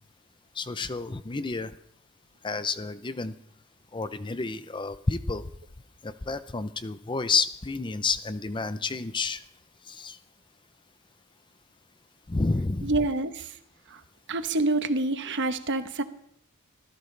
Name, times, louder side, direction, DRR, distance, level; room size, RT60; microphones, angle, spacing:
voice 1, 0.5-1.7 2.4-3.3 3.9-5.4 6.0-9.4 9.8-10.2 12.3-12.9, left 4 dB, 20° left, 12 dB, 0.6 m, -30 dB
voice 2, 12.8-13.5 14.3-16.0, right 2 dB, 55° right, 10 dB, 1.1 m, -27 dB
25.5 x 14.5 x 3.3 m, 0.68 s
head